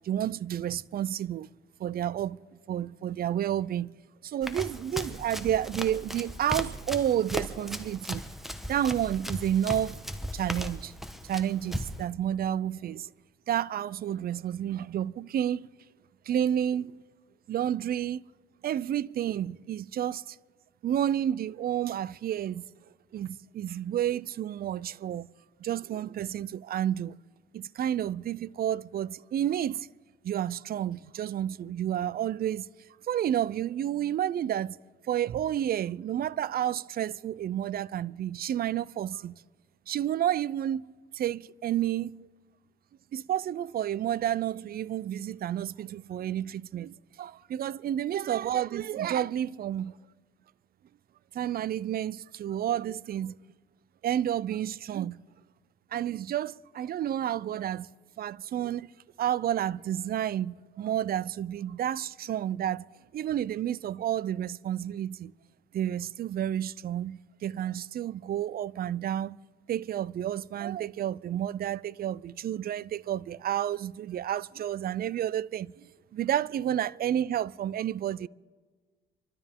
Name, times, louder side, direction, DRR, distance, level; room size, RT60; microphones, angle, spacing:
voice 1, 0.0-1.5 1.8-2.4 2.7-4.0 4.2-8.3 8.6-10.0 10.3-10.9 11.2-13.1 13.5-15.7 16.3-17.0 17.5-18.2 18.6-20.4 20.8-22.6 23.1-25.3 25.6-27.2 27.5-29.9 30.2-32.7 33.0-34.8 35.1-39.4 39.9-42.3 43.1-49.9 51.3-53.3 54.0-55.2 55.9-57.9 58.2-58.9 59.2-62.9 63.1-65.3 65.7-69.4 69.7-78.3, right 10 dB, 50° right, 0.4 m, -30 dB
Run, 4.4-12.1, equal, ahead, 1.1 m, -37 dB
26.5 x 12.5 x 3.6 m
cardioid pair, 90°, 20 cm